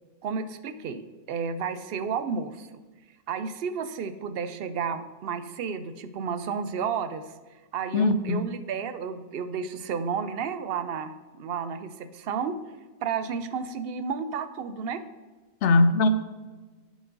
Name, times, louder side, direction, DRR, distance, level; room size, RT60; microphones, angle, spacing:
voice 1, 0.2-2.7 3.3-7.2 7.7-12.6 13.0-15.0, right 6 dB, 60° right, 11 dB, 0.7 m, -32 dB
voice 2, 7.9-8.4 15.6-16.1, left 2 dB, 75° left, 11 dB, 0.9 m, -20 dB
11.0 x 5.2 x 3.8 m, 1.3 s
omnidirectional pair, 1.2 m